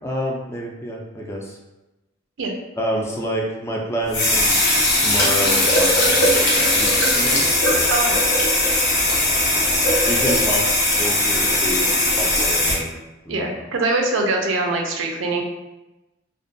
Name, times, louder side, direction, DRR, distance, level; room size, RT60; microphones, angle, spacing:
voice 1, 0.0-1.6 2.8-4.6 5.0-7.5 10.0-10.7 10.9-13.0 13.3-13.5, equal, 15° left, -2 dB, 0.3 m, -28 dB
sound 1, 4.1-12.7, left 1 dB, 85° left, 0.7 m, -18 dB
voice 2, 13.3-15.4, right 2 dB, 85° right, 2 dB, 0.4 m, -23 dB
2.5 x 2.2 x 2.5 m, 1.0 s
head